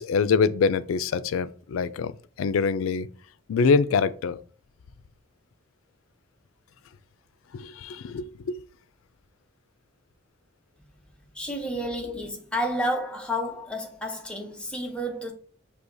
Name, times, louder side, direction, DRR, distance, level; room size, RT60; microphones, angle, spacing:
voice 1, 0.0-2.1 2.4-3.1 3.5-4.4 7.5-8.6 12.0-12.1, left 5 dB, 90° left, 0.4 m, -24 dB
voice 2, 11.3-15.3, equal, 5° left, 0.7 m, -30 dB
6.3 x 2.8 x 2.6 m
head